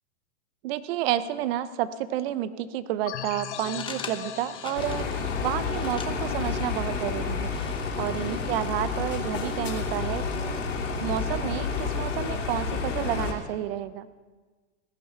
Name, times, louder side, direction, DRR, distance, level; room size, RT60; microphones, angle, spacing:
voice 1, 0.6-7.5 8.0-10.6 11.0-14.1, right 12 dB, 55° right, 14 dB, 0.9 m, -30 dB
sound 1, 3.1-7.5, left 10 dB, 65° left, 1.2 m, -41 dB
sound 2, 3.4-10.7, left 5 dB, 15° left, 0.9 m, -45 dB
sound 3, 4.8-13.3, left 5 dB, 85° left, 2.9 m, -30 dB
16.5 x 10.5 x 5.7 m, 1.4 s
hypercardioid pair, 125°, 36 cm